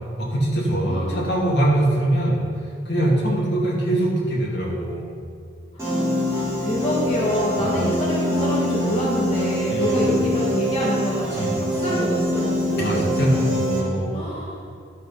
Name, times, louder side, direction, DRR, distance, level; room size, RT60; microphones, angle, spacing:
voice 1, 0.2-2.4 2.9-5.1 7.6-7.9 9.7-10.2 11.3-11.6 12.8-14.2, right 1 dB, 60° left, -4 dB, 2.3 m, -23 dB
voice 2, 0.9-1.2 5.7-13.1 14.1-14.6, equal, 30° left, -6 dB, 1.3 m, -27 dB
Piano, 5.8-13.8, equal, 15° right, 2.8 m, -24 dB
11.5 x 6.0 x 5.5 m, 2.4 s
head